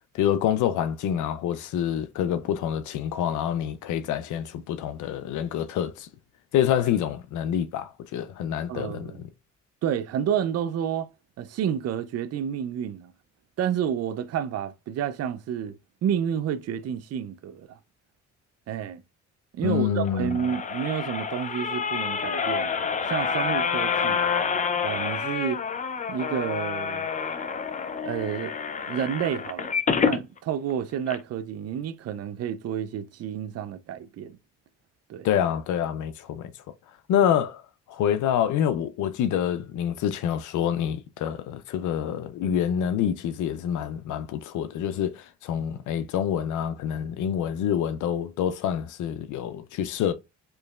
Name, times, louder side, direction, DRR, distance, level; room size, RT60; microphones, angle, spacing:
voice 1, 0.1-6.1 6.5-9.3 19.6-20.4 35.2-36.5 37.1-37.6 37.9-50.1, left 9 dB, 75° left, 0.5 m, -27 dB
voice 2, 8.7-9.2 9.8-11.1 11.4-13.1 13.6-17.8 18.7-19.0 19.5-24.2 24.8-25.6 26.1-27.1 28.0-28.5 28.8-34.4 35.1-35.3, right 9 dB, 55° right, 0.5 m, -30 dB
sound 1, 20.1-30.2 30.7-30.8 31.1-31.2, left 6 dB, 25° left, 0.5 m, -28 dB
4.5 x 3.0 x 2.3 m
cardioid pair, 90°, 30 cm